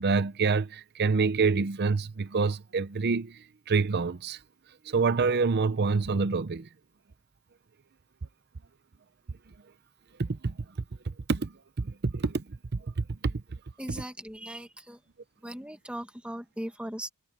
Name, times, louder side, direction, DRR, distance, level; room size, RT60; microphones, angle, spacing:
voice 1, 0.0-4.4 4.9-6.7 10.2-10.6 11.1-11.5 11.8-12.4 12.7-13.4, right 4 dB, 50° right, 0.6 m, -27 dB
voice 2, 13.8-15.0 15.4-17.1, right 1 dB, 5° right, 1.8 m, -39 dB
head